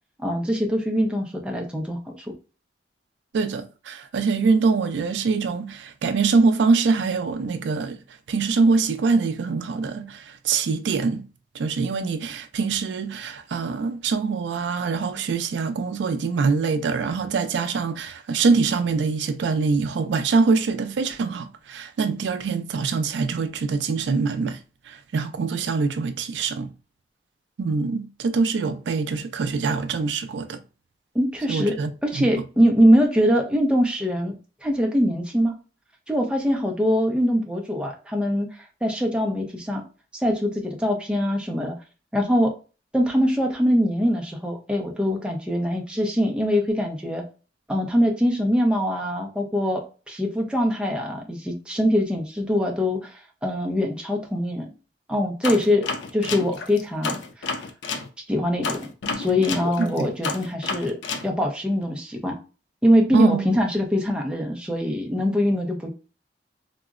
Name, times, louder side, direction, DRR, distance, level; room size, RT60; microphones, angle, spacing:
voice 1, 0.2-2.3 31.1-31.8 32.0-34.4 34.6-35.5 36.1-39.8 40.1-41.7 42.1-42.5 42.9-47.2 47.7-49.8 50.1-54.7 55.1-55.8 56.1-57.5 58.3-58.8 59.2-61.0 61.2-62.4 62.8-65.9, equal, 5° right, 0.5 m, -23 dB
voice 2, 3.3-8.0 8.3-11.2 11.5-24.6 24.9-26.7 27.6-30.6 31.5-32.3 59.8-60.1 63.1-63.4, right 4 dB, 85° right, 0.4 m, -24 dB
sound 1, 55.4-58.1 58.6-61.3, left 4 dB, 85° left, 0.4 m, -30 dB
3.6 x 2.0 x 2.4 m
head